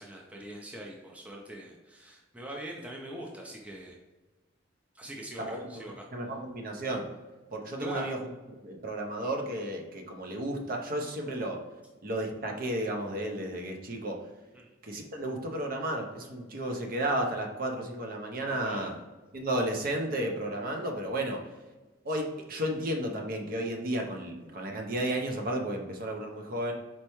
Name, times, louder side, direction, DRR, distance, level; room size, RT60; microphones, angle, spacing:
voice 1, 0.0-4.0 4.9-6.1 7.8-8.1 14.5-14.7 18.4-18.9, right 1 dB, 5° right, -1 dB, 0.4 m, -42 dB
voice 2, 6.1-7.1 7.5-8.2 8.6-11.6 12.0-14.2 14.8-18.9 19.3-21.4 22.0-26.7, right 1 dB, 50° right, 2 dB, 0.7 m, -33 dB
4.4 x 3.3 x 3.0 m, 1.2 s
head